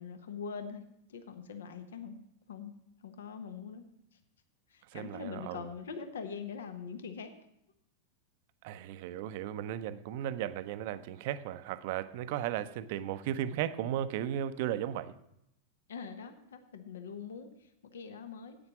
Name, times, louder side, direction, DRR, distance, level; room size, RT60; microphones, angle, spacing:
voice 1, 0.0-2.1 2.5-3.8 4.7-7.3 15.9-18.6, left 6 dB, 65° left, 9 dB, 1.0 m, -43 dB
voice 2, 4.9-5.7 8.6-15.1, right 11 dB, 50° right, 13 dB, 0.6 m, -35 dB
9.9 x 8.8 x 6.0 m, 0.79 s
figure-of-eight pair, 90°, 0 cm